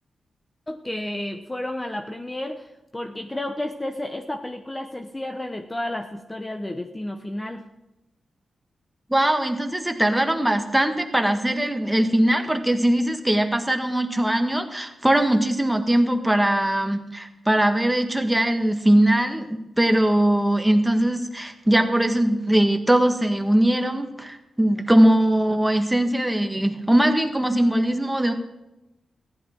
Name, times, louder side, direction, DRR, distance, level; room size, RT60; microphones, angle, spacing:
voice 1, 0.7-7.7, left 1 dB, 20° left, 6 dB, 0.9 m, -32 dB
voice 2, 9.1-28.3, right 1 dB, 10° right, 6 dB, 1.6 m, -21 dB
15.0 x 11.0 x 4.6 m, 0.96 s
cardioid pair, 65°, 0 cm